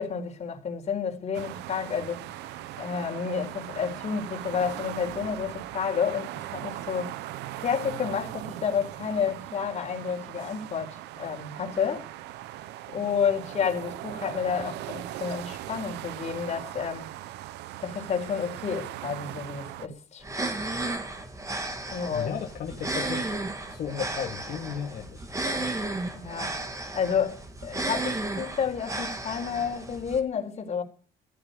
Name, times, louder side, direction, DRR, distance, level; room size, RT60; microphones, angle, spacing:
voice 1, 0.0-2.2 2.8-7.1 7.6-12.1 12.9-17.1 17.8-20.2 21.9-22.4 26.1-26.6 26.9-30.8, left 7 dB, 40° left, 4.7 m, -30 dB
sound 1, 1.3-19.9, right 14 dB, 85° right, 0.9 m, -39 dB
sound 2, 20.2-30.2, right 2 dB, 20° right, 3.0 m, -33 dB
voice 2, 22.1-23.3 23.7-25.3 25.6-25.7, left 8 dB, 60° left, 2.4 m, -35 dB
14.5 x 13.0 x 5.3 m
cardioid pair, 110°, 17 cm